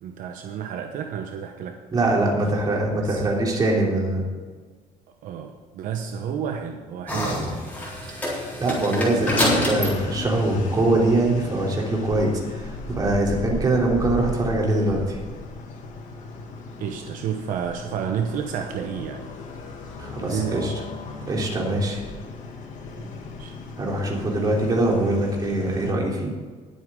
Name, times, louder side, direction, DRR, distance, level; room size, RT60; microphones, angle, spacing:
voice 1, 0.0-1.8 3.0-3.3 5.2-7.7 13.4-13.6 16.8-19.3 20.0-20.8 23.0-23.1 23.4-23.5, right 8 dB, 70° right, 4 dB, 1.0 m, -31 dB
voice 2, 1.9-4.2 8.6-15.2 20.0-20.7 21.3-22.0 23.8-26.3, right 2 dB, 30° right, -2 dB, 3.3 m, -23 dB
sound 1, 7.1-11.4, left 1 dB, 10° left, 4.0 m, -28 dB
sound 2, 9.2-25.9, left 3 dB, 60° left, 2.1 m, -36 dB
20.0 x 8.3 x 3.8 m, 1.5 s
cardioid pair, 140°, 14 cm